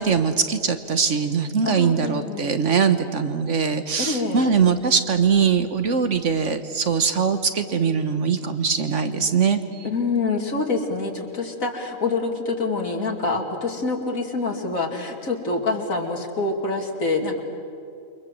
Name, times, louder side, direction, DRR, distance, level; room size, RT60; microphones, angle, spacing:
voice 1, 0.0-9.9, right 6 dB, 65° right, 9 dB, 1.5 m, -22 dB
voice 2, 1.6-2.5 4.0-4.6 9.8-17.4, left 3 dB, 80° left, 2 dB, 3.1 m, -26 dB
28.5 x 24.0 x 7.6 m, 2.5 s
omnidirectional pair, 1.4 m